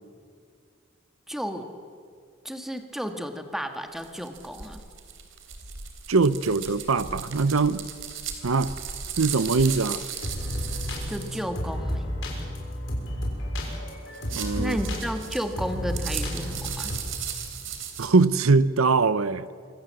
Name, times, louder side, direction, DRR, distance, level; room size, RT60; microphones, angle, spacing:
voice 1, 1.3-1.7 2.4-4.8 11.1-12.1 14.6-16.9, equal, ahead, 5 dB, 1.8 m, -32 dB
sound 1, 4.0-11.4 14.1-18.1, right 7 dB, 65° right, 3.5 m, -36 dB
voice 2, 6.1-7.8 8.4-8.7 9.2-10.0 14.3-14.8 18.0-19.5, right 4 dB, 90° right, 15 dB, 0.8 m, -22 dB
sound 2, 10.2-17.0, equal, 65° left, 6.4 m, -32 dB
26.5 x 25.0 x 7.7 m, 2.1 s
head